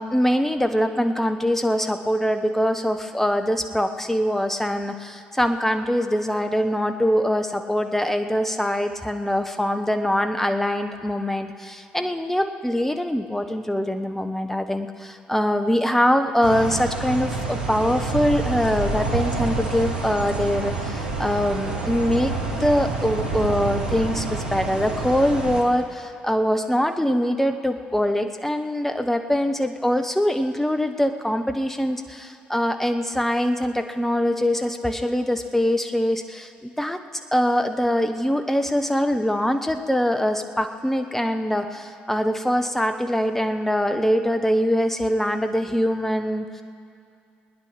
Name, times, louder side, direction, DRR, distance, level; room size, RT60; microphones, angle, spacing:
voice 1, 0.0-37.0 37.3-46.6, equal, 5° left, 6 dB, 1.2 m, -23 dB
sound 1, 16.4-25.6, right 3 dB, 80° right, 1.5 m, -28 dB
21.5 x 9.7 x 6.1 m, 2.5 s
figure-of-eight pair, 45°, 5 cm